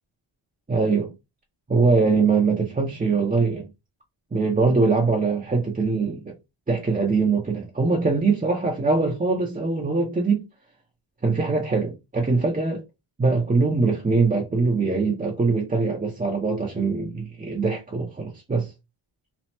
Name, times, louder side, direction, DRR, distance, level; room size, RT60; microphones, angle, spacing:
voice 1, 0.7-1.1 1.7-3.7 4.3-6.2 6.7-10.4 11.2-12.8 13.2-18.7, right 4 dB, 15° right, 0.5 m, -22 dB
3.2 x 2.0 x 2.7 m
wide cardioid pair, 95°, 50 cm